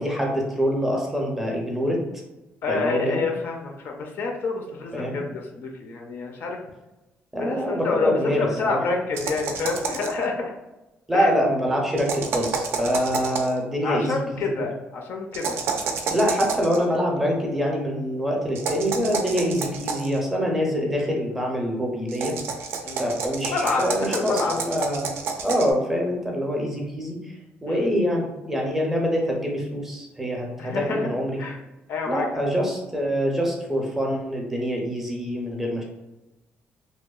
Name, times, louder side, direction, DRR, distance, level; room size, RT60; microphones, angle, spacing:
voice 1, 0.0-2.0 2.6-3.2 4.9-5.2 7.3-8.8 11.1-14.7 16.1-22.4 23.0-25.1 25.4-27.2 27.6-31.4 32.1-35.8, equal, 10° right, -1 dB, 0.5 m, -25 dB
voice 2, 2.6-6.6 7.4-10.5 11.1-11.3 13.8-15.6 21.0-21.1 22.8-23.0 23.5-24.6 27.7-27.9 30.6-31.0 31.4-31.6 31.9-32.4, left 4 dB, 60° left, 2 dB, 0.4 m, -28 dB
sound 1, 9.2-10.2 12.0-13.6 15.3-16.8 18.5-20.2 22.1-25.7, right 5 dB, 75° right, 0.4 m, -30 dB
2.7 x 2.1 x 2.3 m, 1.0 s
cardioid pair, 155°, 4 cm